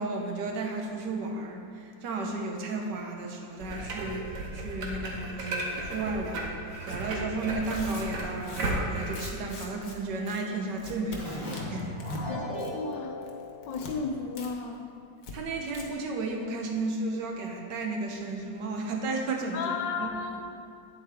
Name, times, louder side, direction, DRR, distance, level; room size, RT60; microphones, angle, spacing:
voice 1, 0.0-11.9 15.3-19.6 20.0-20.1, right 3 dB, 75° right, 2 dB, 1.6 m, -33 dB
sound 1, 3.6-9.2, right 1 dB, 55° right, 1.4 m, -34 dB
Tearing, 6.8-7.0 7.5-10.0 10.3-10.4 10.8-11.2 11.5-12.3 12.5-12.9 13.2-13.9 14.4-14.5 14.8-14.9 15.2-15.3 15.7-15.8, left 3 dB, 60° left, 1.5 m, -44 dB
Keyboard (musical), 11.2-14.6, left 2 dB, 40° left, 1.4 m, -37 dB
voice 2, 12.7-13.2 13.7-14.9 19.5-20.4, left 5 dB, 85° left, 4 dB, 1.5 m, -33 dB
9.4 x 7.7 x 3.6 m, 2.5 s
omnidirectional pair, 1.9 m